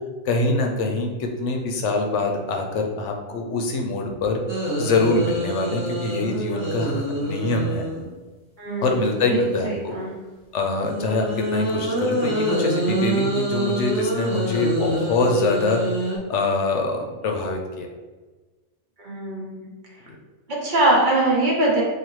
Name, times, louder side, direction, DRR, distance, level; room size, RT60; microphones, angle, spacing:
voice 1, 0.2-4.4 4.8-7.8 8.8-9.9 10.5-15.8 16.3-17.9, left 3 dB, 75° left, 2 dB, 0.9 m, -24 dB
sound 1, 4.5-8.1 10.8-16.2, right 1 dB, 10° right, 1.1 m, -26 dB
voice 2, 8.6-10.1 19.0-19.7 20.5-21.8, right 2 dB, 45° right, -4 dB, 0.9 m, -22 dB
4.1 x 2.7 x 3.0 m, 1.3 s
omnidirectional pair, 1.2 m